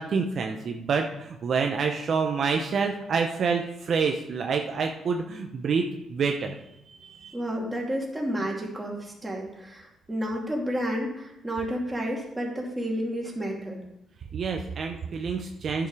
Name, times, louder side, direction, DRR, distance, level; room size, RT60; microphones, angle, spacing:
voice 1, 0.0-6.6 6.9-7.3 14.3-15.9, right 5 dB, 55° right, 3 dB, 0.8 m, -27 dB
voice 2, 7.3-13.8, equal, 10° right, -2 dB, 2.7 m, -31 dB
10.5 x 6.9 x 4.9 m, 0.86 s
cardioid pair, 90°, 0 cm